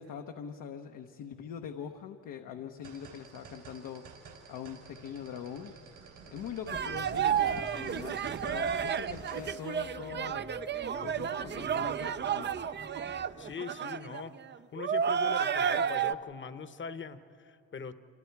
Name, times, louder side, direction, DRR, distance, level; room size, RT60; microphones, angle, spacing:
voice 1, 0.0-4.1 4.5-5.7 6.2-10.4 11.0-12.5, left 8 dB, 75° left, 4 dB, 1.1 m, -43 dB
sound 1, 2.8-9.5, right 5 dB, 80° right, 4.1 m, -49 dB
sound 2, 6.7-13.5, left 2 dB, 10° left, 0.7 m, -48 dB
sound 3, 6.7-16.1, right 8 dB, 35° right, 0.5 m, -31 dB
voice 2, 13.4-14.4 14.7-17.9, left 5 dB, 35° left, 12 dB, 1.1 m, -41 dB
27.5 x 25.5 x 4.7 m, 2.6 s
cardioid pair, 85°, 32 cm